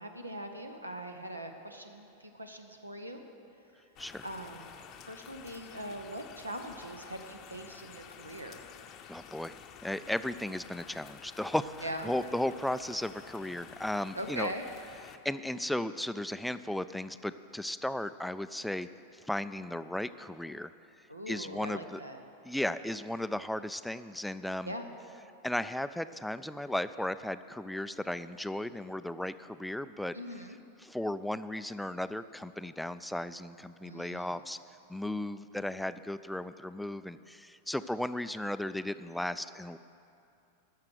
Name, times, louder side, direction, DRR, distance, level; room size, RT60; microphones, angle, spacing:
voice 1, 0.0-3.2 4.2-4.7 5.0-8.6 11.8-12.1 14.1-14.6 21.1-22.2 24.6-24.9 30.1-30.6 33.8-34.4, equal, 85° right, 5 dB, 0.9 m, -41 dB
sound 1, 4.0-15.2, left 9 dB, 35° left, 0.7 m, -51 dB
voice 2, 9.1-9.6 9.8-14.5 15.1-18.9 19.2-20.7 21.3-22.0 22.4-24.7 25.4-30.2 30.8-34.6 34.9-39.8, left 1 dB, 5° left, 13 dB, 0.3 m, -35 dB
12.5 x 6.6 x 7.7 m, 2.6 s
figure-of-eight pair, 90°, 0 cm